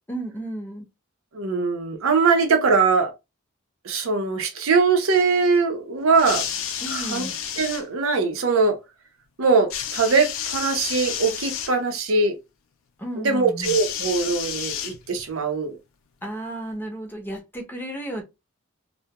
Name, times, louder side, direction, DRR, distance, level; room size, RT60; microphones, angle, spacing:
voice 1, 0.1-0.9 6.8-7.4 13.0-13.8 16.2-18.2, right 1 dB, 10° left, 0.6 m, -33 dB
voice 2, 1.3-3.1 3.8-6.4 6.9-7.3 7.6-8.8 9.4-12.4 13.2-15.7, right 4 dB, 80° right, 0.6 m, -21 dB
sound 1, 6.1-7.8 9.7-11.7 13.6-15.3 16.3-16.4, left 9 dB, 65° left, 0.4 m, -30 dB
2.2 x 2.1 x 2.8 m
head